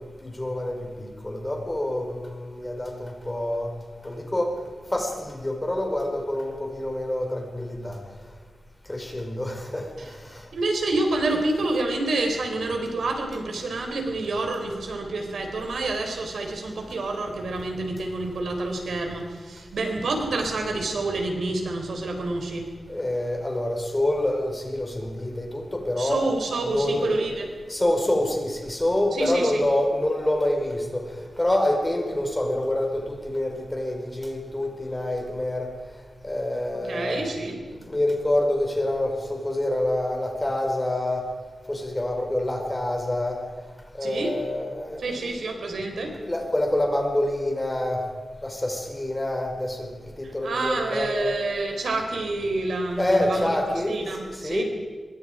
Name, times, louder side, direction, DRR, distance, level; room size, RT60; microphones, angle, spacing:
voice 1, 0.2-3.7 4.0-4.5 4.9-8.0 8.9-10.5 22.9-26.2 26.6-27.1 27.7-31.1 31.4-35.7 36.2-37.3 37.9-41.3 41.7-43.4 43.9-45.4 46.1-48.0 48.4-49.9 50.2-51.4 53.0-54.6, left 1 dB, 15° left, 2 dB, 4.8 m, -27 dB
voice 2, 10.5-22.7 26.0-27.5 29.1-29.6 36.9-37.6 44.0-44.3 45.0-46.1 50.4-53.6 53.9-54.6, right 2 dB, 85° right, 3 dB, 4.4 m, -28 dB
26.0 x 23.0 x 5.1 m, 1.5 s
wide cardioid pair, 135°, 0 cm